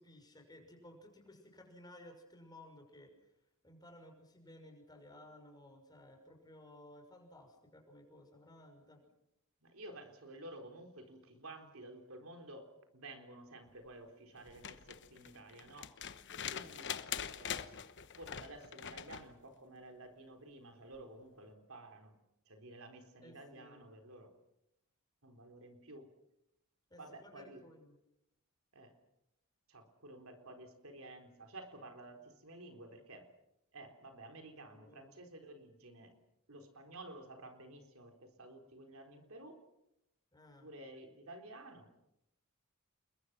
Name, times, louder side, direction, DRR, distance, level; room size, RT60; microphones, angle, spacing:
voice 1, 0.0-3.3 3.6-9.0 23.2-23.9 26.9-28.0 34.7-35.1 40.3-40.7, left 1 dB, 20° left, 3 dB, 6.1 m, -57 dB
voice 2, 9.6-15.9 16.3-17.0 17.4-17.8 18.2-22.1 22.5-24.3 25.2-26.1 27.0-27.6 28.7-28.9 29.7-33.3 33.7-36.2 36.5-39.6 40.6-41.9, right 2 dB, 70° right, 5 dB, 4.0 m, -52 dB
sound 1, 14.4-19.3 20.9-21.0, left 8 dB, 55° left, 1.1 m, -43 dB
29.0 x 22.0 x 6.2 m, 0.84 s
head